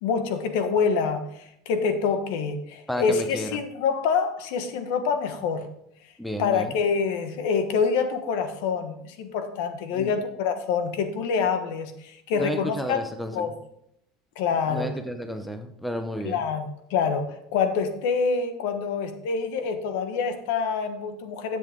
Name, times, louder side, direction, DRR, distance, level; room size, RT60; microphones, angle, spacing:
voice 1, 0.0-5.7 6.4-13.0 13.3-13.5 14.4-14.9 16.2-21.6, left 5 dB, 75° left, 8 dB, 1.3 m, -26 dB
voice 2, 2.9-3.5 6.2-6.7 9.9-10.1 12.3-13.3 14.7-16.4, equal, ahead, 6 dB, 0.7 m, -32 dB
10.5 x 7.8 x 3.6 m, 0.73 s
cardioid pair, 165°, 0 cm